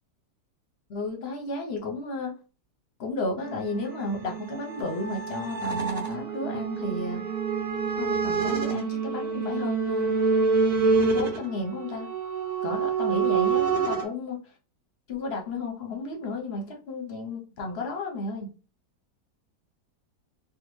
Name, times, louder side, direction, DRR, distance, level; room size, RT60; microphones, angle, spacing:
voice 1, 0.9-2.4 3.0-7.3 8.0-10.1 11.0-12.1 12.6-14.4 15.1-18.5, left 2 dB, 50° left, 2 dB, 0.8 m, -33 dB
sound 1, 3.4-14.1, right 5 dB, 70° right, 1.3 m, -27 dB
3.5 x 2.2 x 3.0 m, 0.34 s
omnidirectional pair, 1.8 m